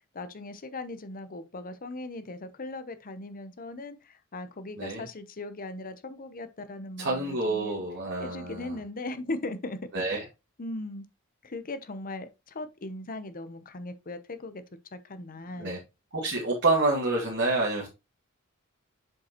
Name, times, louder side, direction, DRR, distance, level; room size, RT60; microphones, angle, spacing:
voice 1, 0.0-7.8 8.2-9.8 10.1-10.3 10.6-11.1 11.4-14.6 14.9-15.7, left 2 dB, 40° left, 0.8 m, -38 dB
voice 2, 7.0-8.7 9.9-10.2 15.6-15.8 16.1-17.9, right 2 dB, 55° right, 1.9 m, -28 dB
7.4 x 5.2 x 3.0 m
head